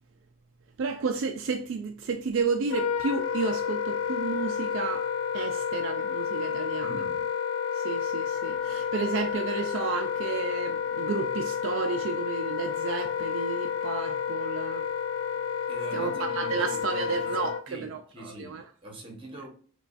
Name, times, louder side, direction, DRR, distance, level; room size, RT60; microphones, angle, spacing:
voice 1, 0.8-5.1 5.3-7.1 7.7-14.9 15.9-18.6, right 5 dB, 60° right, 0.3 m, -32 dB
Wind instrument woodwind instrument, 2.6-17.6, left 7 dB, 80° left, 0.4 m, -30 dB
voice 2, 6.8-7.2 15.7-19.5, right 2 dB, 25° right, 1.0 m, -43 dB
5.6 x 2.3 x 2.5 m
head